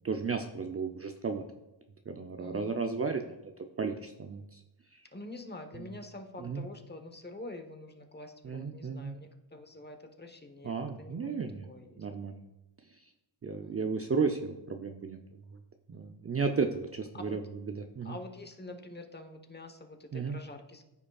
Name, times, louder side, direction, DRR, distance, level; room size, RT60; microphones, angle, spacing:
voice 1, 0.0-1.4 2.1-3.5 3.8-4.6 4.9-5.0 6.4-6.6 8.4-9.1 10.6-11.7 12.0-12.4 13.4-15.2 15.9-17.4 17.7-18.2 20.1-20.4, right 5 dB, 30° right, 4 dB, 0.5 m, -34 dB
voice 2, 2.4-2.7 5.1-11.4 11.7-12.0 13.6-13.9 15.9-16.1 17.1-17.4 18.0-20.8, left 2 dB, 20° left, 6 dB, 1.0 m, -46 dB
14.0 x 5.0 x 2.4 m, 0.97 s
cardioid pair, 70°, 50 cm